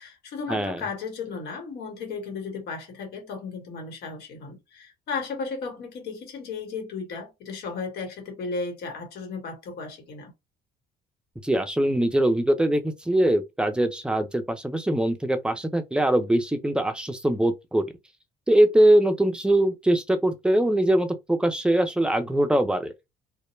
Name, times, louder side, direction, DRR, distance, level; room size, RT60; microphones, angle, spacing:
voice 1, 0.0-10.3, left 4 dB, 75° left, 1.3 m, -35 dB
voice 2, 11.4-17.9 18.5-22.9, right 1 dB, 5° right, 0.4 m, -22 dB
2.2 x 2.0 x 3.0 m
cardioid pair, 110°, 17 cm